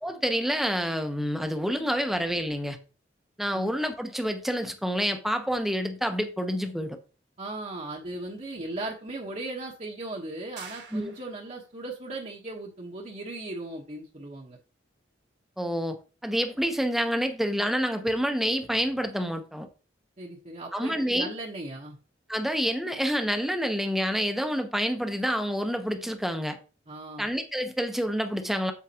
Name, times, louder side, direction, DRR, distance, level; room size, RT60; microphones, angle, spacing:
voice 1, 0.0-2.8 3.4-7.0 10.9-11.1 15.6-19.7 20.7-21.3 22.3-26.6 27.2-28.7, equal, ahead, 0.9 m, -28 dB
voice 2, 7.4-14.6 20.2-22.0 26.9-27.3, right 2 dB, 40° right, 1.2 m, -37 dB
sound 1, 10.6-11.6, right 6 dB, 65° right, 1.8 m, -46 dB
8.4 x 7.4 x 2.9 m
head